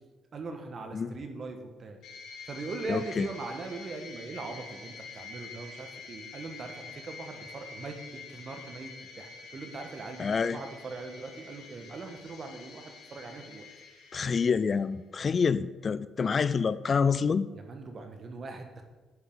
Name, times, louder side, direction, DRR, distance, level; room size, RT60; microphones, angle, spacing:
voice 1, 0.3-2.0 2.5-8.9 9.2-13.7 17.5-18.8, right 3 dB, 50° right, 5 dB, 1.4 m, -41 dB
sound 1, 2.0-14.9, left 4 dB, 75° left, 1.3 m, -47 dB
voice 2, 2.9-3.3 10.2-10.6 14.1-17.5, left 5 dB, 40° left, 16 dB, 0.3 m, -27 dB
9.6 x 5.5 x 5.5 m, 1.3 s
cardioid pair, 90°, 0 cm